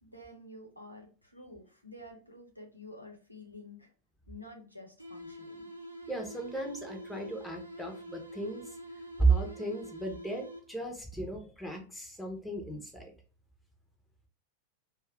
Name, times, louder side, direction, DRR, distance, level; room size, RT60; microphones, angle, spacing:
voice 1, 0.0-3.9 4.3-5.7, left 1 dB, 90° left, 1 dB, 0.9 m, -50 dB
sound 1, 5.0-10.9, equal, 85° right, 0.5 m, -46 dB
voice 2, 6.1-8.6 9.2-13.1, right 3 dB, 5° left, 2 dB, 0.8 m, -33 dB
3.0 x 2.4 x 3.1 m, 0.38 s
figure-of-eight pair, 90°, 0 cm